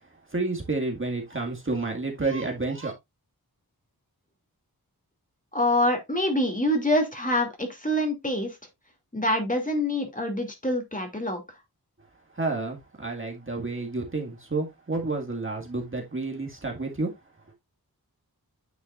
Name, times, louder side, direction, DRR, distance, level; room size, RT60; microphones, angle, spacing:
voice 1, 0.3-2.9 12.3-17.1, right 3 dB, 35° right, 2.0 m, -30 dB
voice 2, 5.5-8.6 9.1-11.4, left 1 dB, 20° left, 2.6 m, -25 dB
9.3 x 6.3 x 2.5 m
wide cardioid pair, 65°, 38 cm